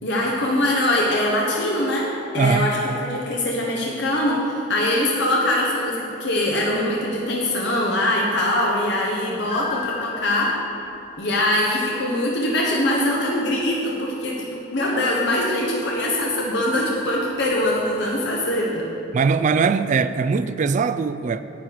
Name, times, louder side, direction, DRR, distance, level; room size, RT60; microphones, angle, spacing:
voice 1, 0.0-2.1 2.3-10.5 11.2-18.9, left 1 dB, 65° left, 1.2 m, -22 dB
voice 2, 2.4-2.7 19.1-21.4, right 5 dB, 40° right, 0.3 m, -21 dB
sound 1, 9.5-12.4, left 7 dB, 40° left, 0.6 m, -36 dB
10.5 x 8.7 x 4.7 m
head